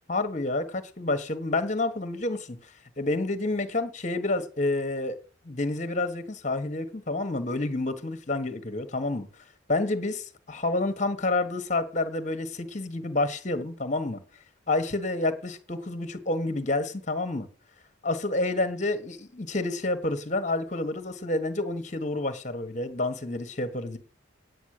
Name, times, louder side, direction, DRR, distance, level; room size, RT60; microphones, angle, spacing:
voice 1, 0.1-2.7 3.0-5.2 5.4-9.3 9.7-14.2 14.7-17.5 18.0-24.0, left 2 dB, 35° left, 1.4 m, -29 dB
9.6 x 9.3 x 6.6 m
head